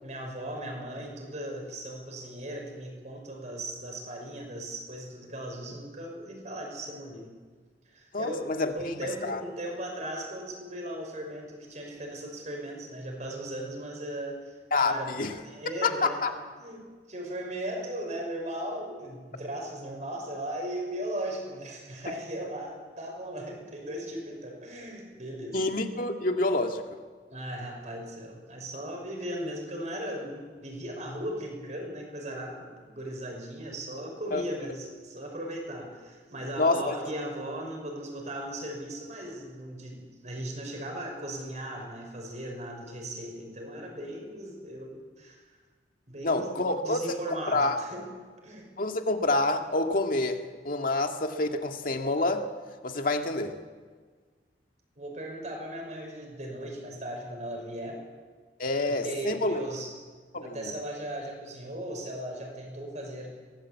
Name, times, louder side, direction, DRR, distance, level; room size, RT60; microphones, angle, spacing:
voice 1, 0.0-7.3 7.9-25.6 27.3-45.6 46.1-46.5 46.8-48.1 48.4-48.7 55.0-58.0 58.8-60.0 60.4-63.3, right 1 dB, 40° right, 1 dB, 6.0 m, -37 dB
voice 2, 8.1-9.4 14.7-15.3 15.8-16.3 25.5-26.8 34.3-34.4 36.6-36.9 46.2-47.0 47.3-47.8 48.8-52.5 52.8-53.5 58.6-59.6 60.3-60.7, left 2 dB, 50° left, 4 dB, 2.1 m, -27 dB
23.5 x 18.5 x 8.5 m, 1.5 s
head